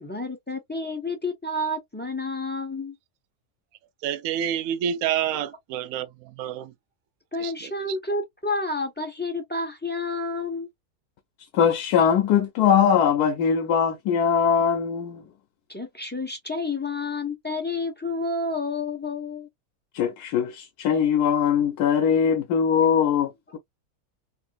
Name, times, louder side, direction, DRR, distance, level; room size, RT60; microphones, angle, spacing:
voice 1, 0.0-2.9 7.3-10.7 15.7-19.5, left 2 dB, 10° left, 0.5 m, -30 dB
voice 2, 4.0-6.7 7.4-8.0, right 9 dB, 70° right, 1.0 m, -29 dB
voice 3, 11.5-15.2 19.9-23.6, left 7 dB, 85° left, 1.2 m, -21 dB
3.2 x 2.6 x 2.3 m
omnidirectional pair, 1.6 m